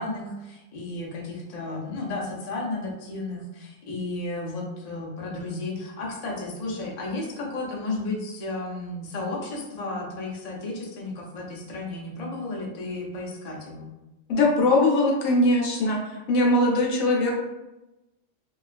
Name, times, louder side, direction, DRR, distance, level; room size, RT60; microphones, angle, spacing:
voice 1, 0.0-13.9, left 2 dB, 65° left, -3 dB, 0.4 m, -33 dB
voice 2, 14.3-16.0 16.3-17.4, left 2 dB, 80° left, -1 dB, 1.0 m, -21 dB
2.3 x 2.3 x 2.4 m, 1.0 s
omnidirectional pair, 1.4 m